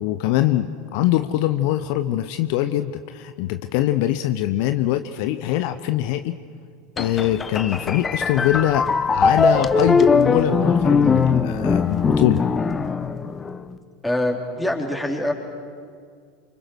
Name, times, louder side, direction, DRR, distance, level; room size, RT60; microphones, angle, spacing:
voice 1, 0.0-6.4 7.0-12.4, left 13 dB, 55° left, 10 dB, 0.9 m, -23 dB
sound 1, 7.0-13.7, left 4 dB, 20° left, 1.1 m, -20 dB
voice 2, 14.0-15.3, left 1 dB, 5° left, 1 dB, 4.0 m, -24 dB
28.5 x 25.5 x 6.4 m, 2.2 s
figure-of-eight pair, 80°, 0 cm